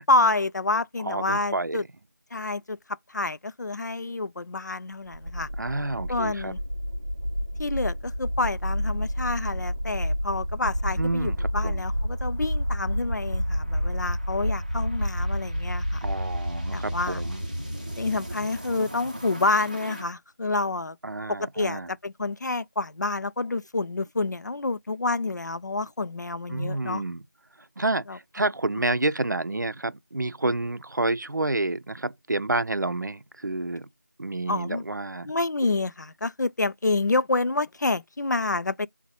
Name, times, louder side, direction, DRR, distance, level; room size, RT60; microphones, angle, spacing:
voice 1, 0.1-1.8 2.3-2.8 3.1-5.5 6.1-6.6 7.6-16.0 16.7-17.2 18.0-21.0 21.3-27.0 28.1-28.2 34.5-34.8 35.3-38.9, left 2 dB, 70° left, 0.3 m, -28 dB
voice 2, 1.0-1.8 5.6-6.5 11.0-11.8 16.0-17.4 21.0-21.9 26.5-27.2 27.8-33.9 34.2-35.3, right 2 dB, 75° right, 0.5 m, -29 dB
sound 1, 5.1-20.0, equal, 25° right, 0.6 m, -30 dB
4.0 x 2.1 x 2.8 m
figure-of-eight pair, 175°, 10 cm